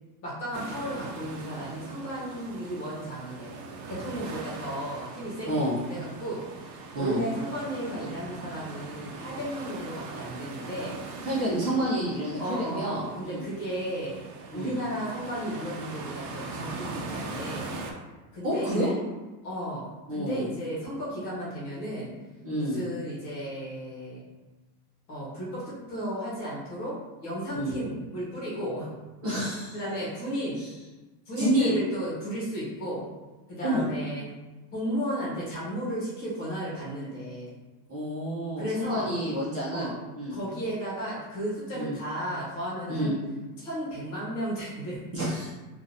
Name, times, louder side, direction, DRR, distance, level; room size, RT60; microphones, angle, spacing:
voice 1, 0.2-3.6 3.9-10.9 12.4-14.2 14.5-17.7 18.3-18.7 19.4-19.8 20.1-22.1 22.6-24.2 25.1-26.9 27.2-28.9 29.7-30.6 31.3-33.1 33.5-34.3 34.7-37.5 38.6-39.2 39.7-39.9 40.3-43.2 43.6-45.0, equal, 40° left, -7 dB, 1.4 m, -34 dB
sound 1, 0.5-17.9, right 3 dB, 75° right, 0.7 m, -40 dB
voice 2, 11.2-13.5 14.5-14.8 18.4-18.9 20.1-20.4 22.4-22.8 27.5-27.8 29.2-29.7 31.4-31.8 33.6-33.9 37.9-40.4 41.7-42.0 42.9-43.1 45.1-45.5, right 1 dB, 30° right, -9 dB, 0.9 m, -29 dB
3.7 x 2.7 x 2.7 m, 1.2 s
supercardioid pair, 165°, 50 cm